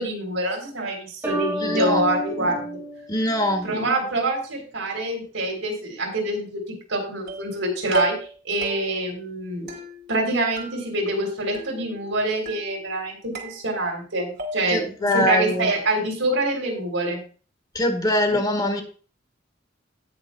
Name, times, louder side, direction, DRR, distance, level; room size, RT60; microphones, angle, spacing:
voice 1, 0.0-2.8 3.6-8.2 8.4-9.7 10.1-17.2 18.3-18.4, right 1 dB, 85° right, 3.6 m, -26 dB
sound 1, 1.2-3.9, right 1 dB, 10° right, 1.9 m, -30 dB
voice 2, 1.6-2.0 3.1-3.7 14.7-15.7 17.7-18.8, left 1 dB, 20° left, 1.4 m, -23 dB
sound 2, 7.3-7.6 7.9-8.4 8.6-9.1 9.7-10.3 10.6-11.2 11.5-12.1 12.5-13.0 13.4-14.1 14.4-14.9, right 3 dB, 55° right, 2.5 m, -34 dB
18.0 x 6.5 x 2.3 m
head